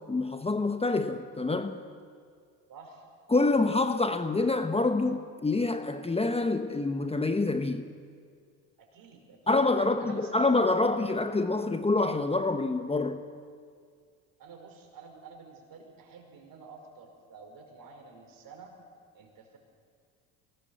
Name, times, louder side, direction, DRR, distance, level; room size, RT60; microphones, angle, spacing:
voice 1, 0.1-1.8 3.3-7.9 9.5-13.2, left 3 dB, 15° left, 1.3 m, -26 dB
voice 2, 2.7-3.1 8.8-10.3 14.4-18.7 19.1-19.6, right 4 dB, 55° right, 5.5 m, -50 dB
24.0 x 18.5 x 8.0 m
supercardioid pair, 80°, 41 cm